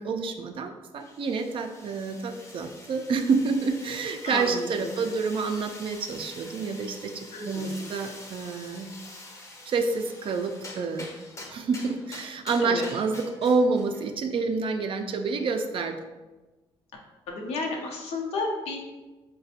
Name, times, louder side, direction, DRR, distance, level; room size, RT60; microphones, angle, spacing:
voice 1, 0.0-8.9 9.7-11.1 11.5-16.0, right 4 dB, 55° right, 6 dB, 0.4 m, -28 dB
sound 1, 1.0-14.1, left 2 dB, 30° left, 0.6 m, -46 dB
voice 2, 4.2-4.9 7.3-7.7 12.6-12.9 17.3-18.8, left 3 dB, 80° left, 0 dB, 0.6 m, -32 dB
4.0 x 2.2 x 2.7 m, 1.2 s
supercardioid pair, 65°, 11 cm